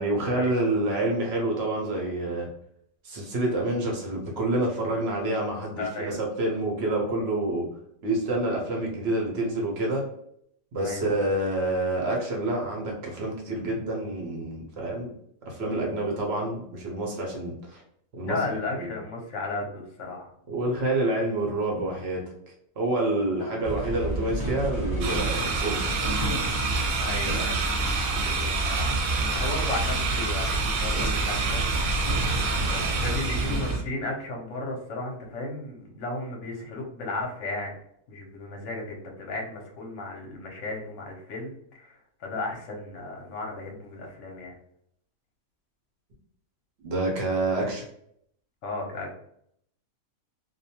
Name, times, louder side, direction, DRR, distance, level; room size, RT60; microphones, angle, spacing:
voice 1, 0.0-2.5 3.0-7.7 8.0-10.0 10.7-15.1 15.5-17.8 18.2-18.9 20.5-22.2 22.8-25.8 46.8-47.8, right 2 dB, 60° right, -1 dB, 0.7 m, -28 dB
voice 2, 5.8-6.2 10.8-11.1 18.2-20.3 23.4-23.6 27.0-31.7 32.7-37.7 38.1-44.6 48.6-49.2, left 2 dB, 60° left, 0 dB, 0.9 m, -35 dB
sound 1, 23.6-33.8, right 1 dB, 20° right, 0.6 m, -29 dB
sound 2, 25.0-33.8, right 4 dB, 85° right, 1.2 m, -29 dB
2.4 x 2.2 x 2.8 m, 0.70 s
omnidirectional pair, 1.7 m